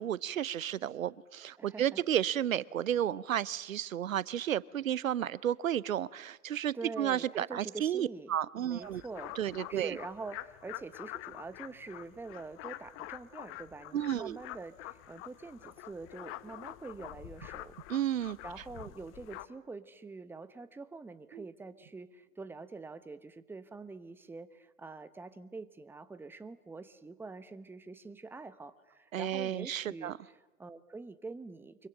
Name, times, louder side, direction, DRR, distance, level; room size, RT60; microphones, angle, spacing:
voice 1, 0.0-9.0 9.4-10.0 13.9-14.4 17.9-18.4 21.3-21.4 29.1-30.2, right 10 dB, 75° right, 21 dB, 0.8 m, -32 dB
voice 2, 1.6-2.0 6.7-8.3 8.6-17.8 18.4-31.9, right 3 dB, 5° right, 13 dB, 0.9 m, -45 dB
sound 1, 8.8-19.5, left 16 dB, 30° left, 1.0 m, -47 dB
25.0 x 23.5 x 7.7 m, 1.2 s
hypercardioid pair, 105°, 41 cm